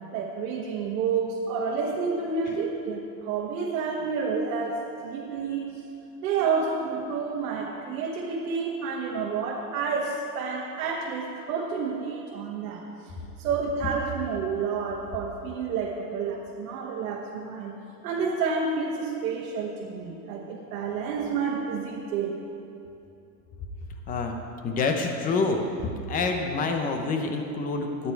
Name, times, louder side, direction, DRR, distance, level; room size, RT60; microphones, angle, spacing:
voice 1, 0.1-5.8 6.2-12.8 13.4-17.8 18.0-22.3, right 5 dB, 60° right, -3 dB, 1.6 m, -29 dB
voice 2, 24.6-28.1, left 3 dB, 15° left, 4 dB, 0.7 m, -27 dB
12.5 x 9.5 x 4.6 m, 2.8 s
supercardioid pair, 150°, 50 cm